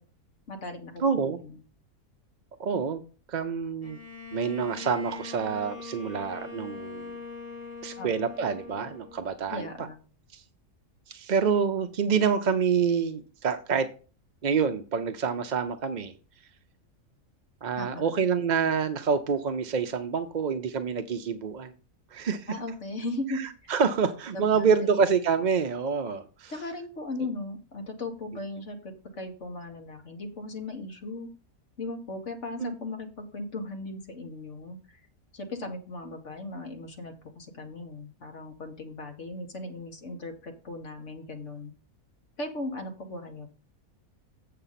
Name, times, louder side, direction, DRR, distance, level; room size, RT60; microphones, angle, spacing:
voice 1, 0.5-0.9 1.4-1.6 8.0-8.1 9.5-10.0 17.8-18.2 22.5-23.4 24.3-25.0 26.5-31.3 31.8-35.0 35.3-41.7 42.4-43.5, left 2 dB, 55° left, 4 dB, 1.9 m, -37 dB
voice 2, 1.0-1.4 2.6-3.0 3.3-4.0 4.3-7.2 7.8-9.9 10.3-10.4 11.1-13.9 14.4-16.1 17.6-21.7 22.1-22.5 23.3-26.5 32.6-32.7, right 6 dB, 45° right, 7 dB, 0.6 m, -27 dB
Bowed string instrument, 3.8-9.6, left 5 dB, 25° left, 4.0 m, -42 dB
8.0 x 5.7 x 5.7 m, 0.36 s
omnidirectional pair, 1.5 m